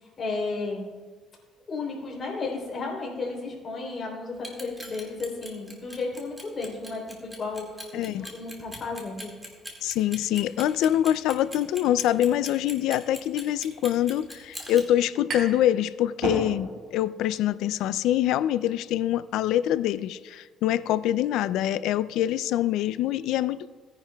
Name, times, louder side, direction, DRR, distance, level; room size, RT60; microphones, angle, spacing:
voice 1, 0.2-0.9 1.7-9.3, left 3 dB, 35° left, -2 dB, 3.3 m, -33 dB
Clock, 4.3-14.8, equal, 10° right, 1.9 m, -41 dB
voice 2, 7.9-8.3 9.8-23.7, left 12 dB, 80° left, 16 dB, 0.3 m, -25 dB
sound 1, 15.3-15.7 16.0-16.9, right 2 dB, 55° right, 3.6 m, -32 dB
17.5 x 10.0 x 2.3 m, 1.5 s
cardioid pair, 135°, 0 cm